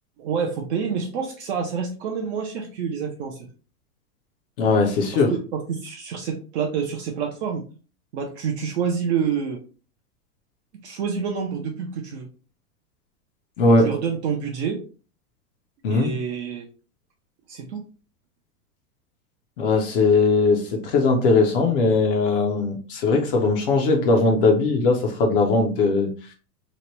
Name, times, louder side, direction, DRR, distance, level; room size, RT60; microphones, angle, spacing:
voice 1, 0.2-3.5 5.3-7.6 8.1-9.6 10.7-12.3 13.8-14.8 15.9-16.7 17.5-17.8, right 6 dB, 45° right, 1 dB, 0.6 m, -27 dB
voice 2, 4.6-5.3 13.6-13.9 15.8-16.1 19.6-26.1, left 3 dB, 35° left, 2 dB, 0.5 m, -19 dB
3.0 x 2.1 x 2.9 m, 0.36 s
hypercardioid pair, 145°, 47 cm